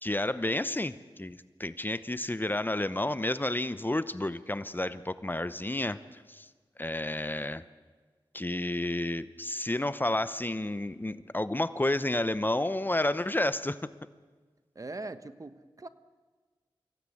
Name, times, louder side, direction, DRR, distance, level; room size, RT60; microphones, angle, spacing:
voice 1, 0.0-6.5 6.8-7.6 8.3-13.8, left 1 dB, 20° left, 14 dB, 0.8 m, -31 dB
voice 2, 14.7-15.9, right 2 dB, 40° right, 12 dB, 1.1 m, -41 dB
25.0 x 16.5 x 8.5 m, 1.4 s
wide cardioid pair, 60°, 9 cm